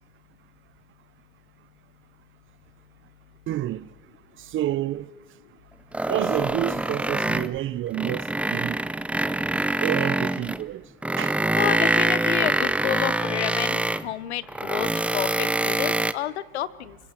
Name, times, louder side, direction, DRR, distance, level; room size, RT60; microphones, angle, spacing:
voice 1, 3.5-3.9 4.5-5.1 6.1-8.8 9.8-10.8 11.2-11.4, right 13 dB, 40° right, 0.8 m, -29 dB
sound 1, 5.9-7.6 7.9-10.6 11.0-14.1 14.5-16.1, right 1 dB, 5° right, 0.6 m, -25 dB
voice 2, 11.6-14.9 15.1-17.0, left 12 dB, 90° left, 0.9 m, -30 dB
25.5 x 23.0 x 5.9 m
supercardioid pair, 100°, 32 cm